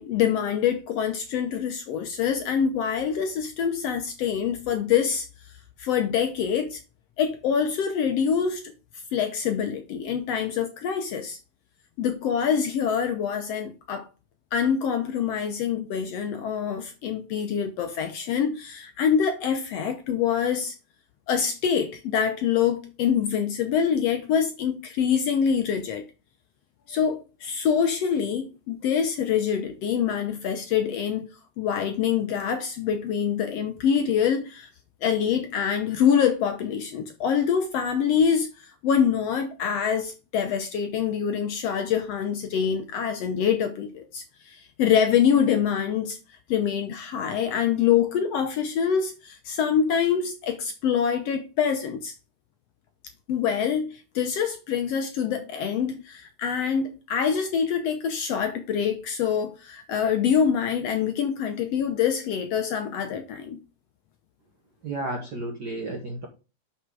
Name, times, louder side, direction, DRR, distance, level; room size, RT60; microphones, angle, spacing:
voice 1, 0.0-5.3 5.8-6.8 7.2-8.7 9.1-11.4 12.0-14.1 14.5-20.7 21.3-26.1 26.9-31.3 31.6-34.7 35.0-46.2 46.5-52.1 53.3-63.6, left 7 dB, 70° left, 1.6 m, -25 dB
voice 2, 64.8-66.3, right 2 dB, 55° right, 1.1 m, -32 dB
6.3 x 5.9 x 4.7 m
omnidirectional pair, 3.6 m